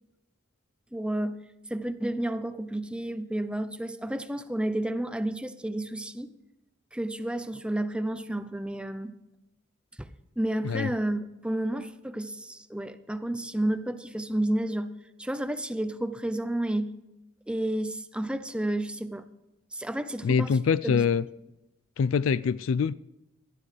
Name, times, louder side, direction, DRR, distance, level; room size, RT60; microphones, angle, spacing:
voice 1, 0.9-1.4 1.7-6.3 6.9-9.1 10.0-10.1 10.4-14.9 15.2-17.0 17.5-19.2 19.7-20.5 20.8-21.0, right 1 dB, 5° right, 11 dB, 0.6 m, -31 dB
voice 2, 20.2-21.2 22.0-22.9, left 6 dB, 75° left, 17 dB, 0.4 m, -24 dB
18.0 x 12.0 x 3.3 m, 0.94 s
head